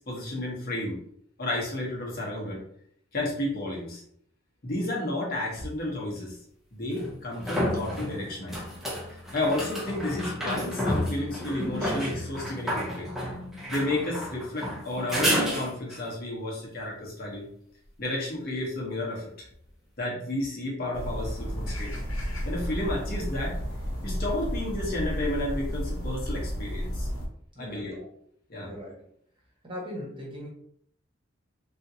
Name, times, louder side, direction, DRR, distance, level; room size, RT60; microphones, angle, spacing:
voice 1, 0.1-1.0 1.4-2.6 3.1-4.0 4.6-6.4 6.7-8.6 9.3-13.1 13.7-17.5 18.0-19.3 20.0-22.0 22.5-23.5 24.0-27.1 27.6-28.0 28.5-28.7, left 1 dB, 50° left, -3 dB, 1.0 m, -32 dB
sound 1, 5.6-5.7 7.0-16.1 19.5-19.6, equal, ahead, 0.7 m, -31 dB
sound 2, 20.9-27.3, equal, 85° left, 0.9 m, -32 dB
voice 2, 27.5-27.9 28.6-29.0 29.6-30.5, equal, 25° right, -5 dB, 1.2 m, -39 dB
3.5 x 2.5 x 2.8 m, 0.67 s
head